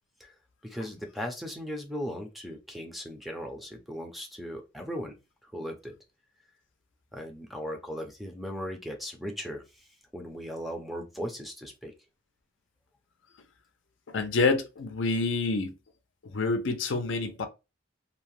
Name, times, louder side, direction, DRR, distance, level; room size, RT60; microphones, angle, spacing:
voice 1, 0.6-5.2 5.4-5.9 7.1-9.9 10.1-11.9, equal, ahead, 0.5 m, -37 dB
voice 2, 14.1-15.7 16.2-17.5, left 3 dB, 70° left, 0.5 m, -27 dB
2.7 x 2.1 x 3.0 m
head